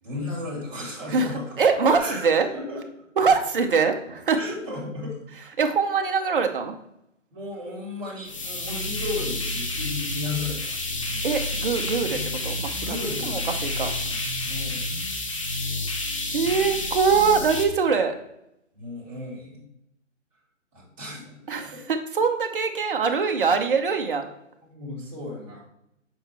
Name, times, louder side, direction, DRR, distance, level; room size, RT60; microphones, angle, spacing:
voice 1, 0.0-1.6 2.0-2.2 2.5-3.1 4.4-5.2 7.3-11.3 12.8-13.5 14.4-15.1 18.7-19.6 20.7-21.8 24.7-25.6, left 2 dB, 25° right, -5 dB, 2.4 m, -35 dB
voice 2, 1.1-2.5 3.2-4.4 5.6-6.7 11.2-12.2 12.4-13.9 16.3-18.1 21.5-24.3, right 5 dB, 45° right, 5 dB, 0.8 m, -23 dB
sound 1, 8.3-17.6, left 2 dB, 25° left, 0.5 m, -29 dB
7.2 x 4.4 x 3.4 m, 0.81 s
hypercardioid pair, 160°, 38 cm